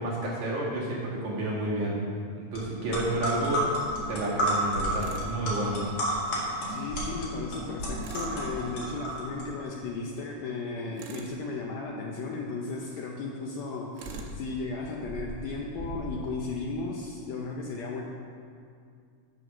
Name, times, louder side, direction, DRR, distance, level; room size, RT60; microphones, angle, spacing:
voice 1, 0.0-2.0 2.3-3.6 4.1-5.9, right 1 dB, 65° right, -6 dB, 3.2 m, -30 dB
sound 1, 2.5-2.6 2.9-9.4, equal, 55° left, 3.1 m, -30 dB
sound 2, 3.5-3.7 6.4-7.0 7.5-7.8 8.5-8.9 10.0-10.1 11.1-11.4 12.8-13.0 13.7-13.8 14.0-14.3 15.0-16.3, right 1 dB, 10° right, 1.9 m, -44 dB
Tools, 5.0-5.3 8.0-8.4 11.0-11.4 14.0-14.4, right 6 dB, 80° right, 2.5 m, -43 dB
voice 2, 6.7-18.0, left 3 dB, 75° left, 0 dB, 1.7 m, -35 dB
8.0 x 7.7 x 6.0 m, 2.3 s
omnidirectional pair, 3.7 m